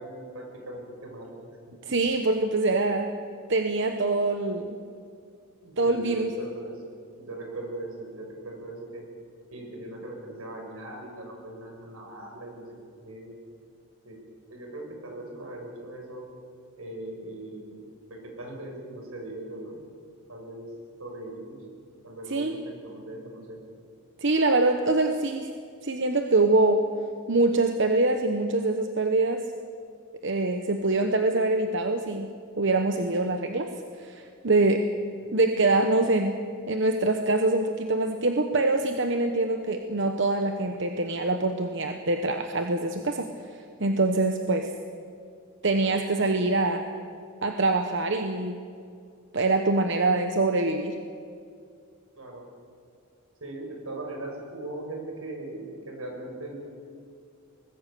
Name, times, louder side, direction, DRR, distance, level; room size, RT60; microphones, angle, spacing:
voice 1, 0.0-1.4 1.8-1.9 2.7-3.0 5.6-6.8 7.2-9.0 9.5-12.6 13.0-13.3 14.0-14.2 14.5-16.2 16.8-17.8 18.1-19.8 20.3-20.7 21.0-21.6 22.0-23.6 35.2-35.4 52.1-52.4 53.4-56.6, right 1 dB, 85° right, 1 dB, 6.3 m, -39 dB
voice 2, 1.9-3.1 3.5-4.8 5.8-6.3 22.3-22.6 24.2-25.5 25.8-26.9 27.3-29.5 30.2-33.7 34.0-34.9 35.3-36.4 36.7-43.3 43.8-44.7 45.6-46.9 47.4-48.6 49.3-51.0, right 2 dB, 55° right, 6 dB, 1.1 m, -24 dB
24.5 x 20.0 x 6.9 m, 2.3 s
head